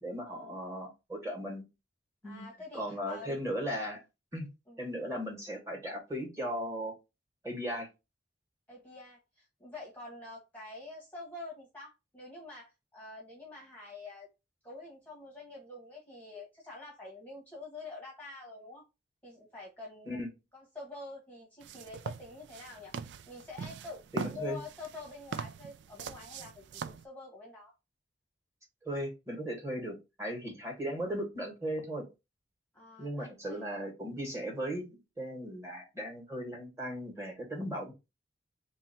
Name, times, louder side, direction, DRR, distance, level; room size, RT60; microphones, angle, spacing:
voice 1, 0.0-1.7 2.2-2.4 2.7-4.0 4.3-4.5 4.8-6.9 7.4-7.9 20.1-20.3 24.1-24.6 28.8-32.1 33.0-37.9, equal, 15° right, 1.6 m, -37 dB
voice 2, 2.2-3.4 4.7-4.8 8.7-14.3 14.6-18.8 19.2-20.2 20.5-27.7 32.7-33.7, left 3 dB, 10° left, 1.1 m, -47 dB
sound 1, 21.6-27.0, right 6 dB, 65° right, 0.3 m, -42 dB
3.0 x 2.8 x 4.2 m
head